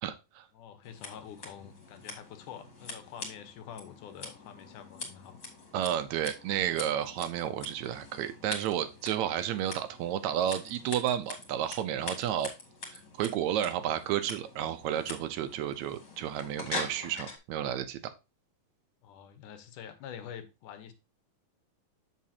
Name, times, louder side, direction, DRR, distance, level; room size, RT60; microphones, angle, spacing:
voice 1, 0.0-0.5 5.7-12.5 12.9-18.1, right 10 dB, 70° right, 1.9 m, -32 dB
voice 2, 0.5-5.4 19.0-20.9, left 9 dB, 75° left, 2.5 m, -46 dB
Scissors, 0.8-17.4, left 3 dB, 35° left, 2.5 m, -44 dB
7.5 x 7.3 x 2.8 m
omnidirectional pair, 3.8 m